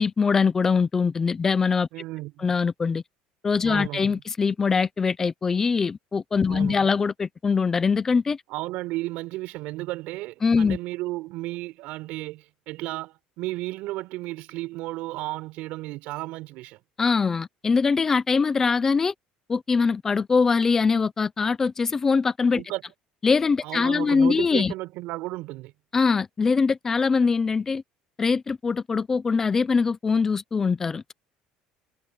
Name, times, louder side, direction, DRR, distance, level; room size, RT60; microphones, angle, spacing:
voice 1, 0.0-1.9 2.4-3.0 3.4-8.4 10.4-10.8 17.0-19.1 19.5-22.6 23.2-24.7 25.9-27.8 28.2-31.1, left 5 dB, 15° left, 0.7 m, -22 dB
voice 2, 1.9-2.6 3.6-4.2 6.5-6.9 8.5-16.8 22.5-22.8 23.6-25.7, right 19 dB, 60° right, 5.1 m, -34 dB
cardioid pair, 175°, 3 cm